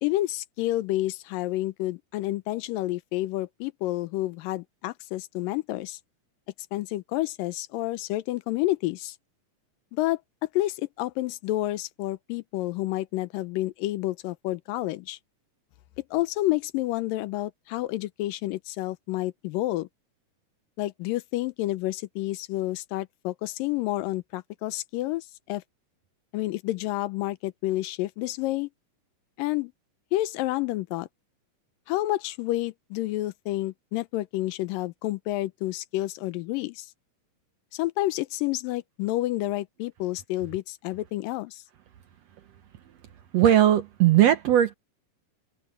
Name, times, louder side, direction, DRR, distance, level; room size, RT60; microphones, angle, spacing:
voice 1, 0.0-6.0 6.7-9.1 9.9-10.2 10.5-15.2 16.1-19.9 20.8-25.6 26.3-28.7 29.4-29.7 30.1-31.1 31.9-36.9 37.7-41.6, left 16 dB, 85° left, 2.4 m, -29 dB
voice 2, 43.3-44.7, right 11 dB, 70° right, 1.7 m, -18 dB
open air
omnidirectional pair, 3.8 m